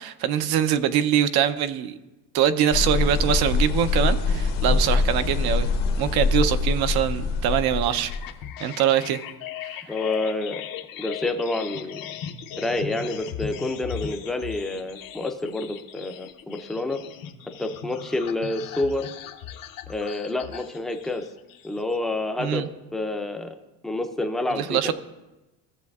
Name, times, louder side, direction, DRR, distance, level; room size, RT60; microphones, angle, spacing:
voice 1, 0.0-1.9 2.3-5.7 6.0-8.1 8.6-9.2 9.6-9.7 22.4-22.7 24.6-24.9, right 9 dB, 65° right, 11 dB, 0.6 m, -23 dB
sound 1, 2.7-8.3, left 4 dB, 75° left, 1.1 m, -24 dB
sound 2, 7.9-22.0, left 9 dB, 55° left, 0.7 m, -38 dB
voice 2, 9.9-10.6 11.0-12.0 12.6-17.0 17.6-19.1 19.9-21.3 21.6-22.7 22.9-23.5 23.8-24.9, left 2 dB, ahead, 5 dB, 0.4 m, -28 dB
15.5 x 7.0 x 2.3 m, 1.0 s
cardioid pair, 140°, 40 cm